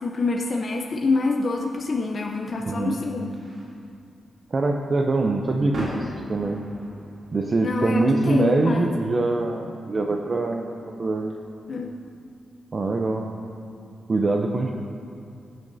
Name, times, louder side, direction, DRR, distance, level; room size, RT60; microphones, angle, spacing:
voice 1, 0.0-3.3 7.6-8.9 11.7-11.9, left 3 dB, 50° left, 0 dB, 0.7 m, -26 dB
sound 1, 2.0-13.1, equal, 60° right, 2.8 m, -43 dB
voice 2, 2.6-3.0 4.5-6.6 7.3-10.7 11.0-11.3 12.7-13.3 14.1-14.7, right 2 dB, 40° right, 2 dB, 0.6 m, -23 dB
15.5 x 9.1 x 2.7 m, 2.4 s
cardioid pair, 95°, 0 cm